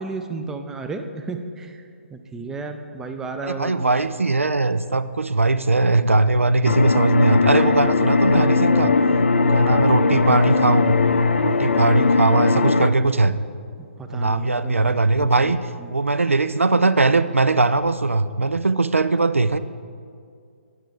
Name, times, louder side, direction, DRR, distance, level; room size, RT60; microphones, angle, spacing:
voice 1, 0.0-1.8 2.1-4.0 14.0-15.5 15.8-15.9, right 3 dB, 5° right, 6 dB, 0.4 m, -33 dB
voice 2, 3.4-8.9 9.5-10.9 11.4-13.4 14.1-15.6 15.9-19.6, right 3 dB, 85° right, 14 dB, 0.4 m, -20 dB
sound 1, 6.6-12.9, left 4 dB, 65° left, 0.4 m, -19 dB
9.1 x 7.9 x 4.6 m, 2.3 s
figure-of-eight pair, 135°, 7 cm